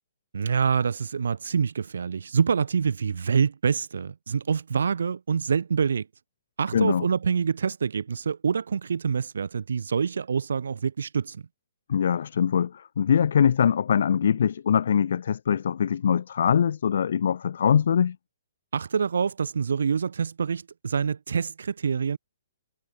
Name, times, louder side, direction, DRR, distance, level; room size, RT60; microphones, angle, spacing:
voice 1, 0.3-6.1 6.6-11.4 18.7-22.2, right 6 dB, 65° right, 1.1 m, -26 dB
voice 2, 6.7-7.0 11.9-18.2, left 8 dB, 55° left, 1.1 m, -22 dB
figure-of-eight pair, 125°, 0 cm